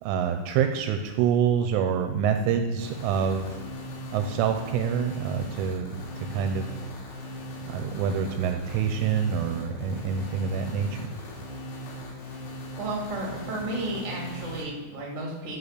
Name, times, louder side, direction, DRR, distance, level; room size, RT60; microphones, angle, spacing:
voice 1, 0.0-3.5 4.1-6.0 6.3-6.7 7.7-11.1, right 7 dB, 85° right, 6 dB, 2.9 m, -26 dB
sound 1, 2.8-14.6, right 1 dB, 70° left, 4.5 m, -39 dB
voice 2, 12.8-15.6, right 2 dB, 40° right, -2 dB, 1.0 m, -33 dB
13.0 x 4.7 x 6.7 m, 1.2 s
omnidirectional pair, 6.0 m